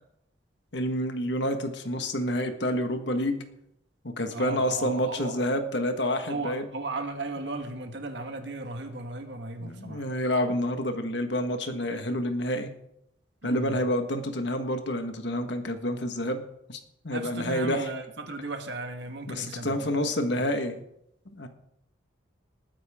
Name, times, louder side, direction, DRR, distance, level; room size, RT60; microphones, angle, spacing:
voice 1, 0.7-3.4 4.2-6.7 9.6-12.7 13.4-16.4 16.7-17.9 19.3-20.8 21.3-21.5, left 1 dB, 65° left, 6 dB, 1.6 m, -28 dB
voice 2, 4.3-5.4 6.2-10.1 13.4-13.8 17.1-20.4, right 2 dB, 65° right, 5 dB, 1.7 m, -36 dB
20.0 x 9.3 x 3.7 m, 0.78 s
head